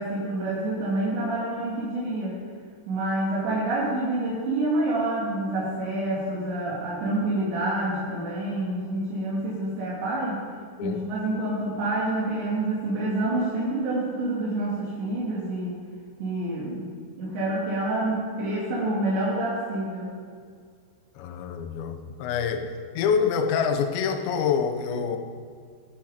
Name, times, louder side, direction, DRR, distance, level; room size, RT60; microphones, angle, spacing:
voice 1, 0.0-2.4 2.9-10.4 10.8-15.7 16.2-16.9 17.2-20.1, right 2 dB, 85° right, -6 dB, 5.0 m, -27 dB
voice 2, 21.2-25.2, left 6 dB, 90° left, 6 dB, 3.4 m, -26 dB
16.5 x 12.5 x 5.1 m, 2.1 s
omnidirectional pair, 5.0 m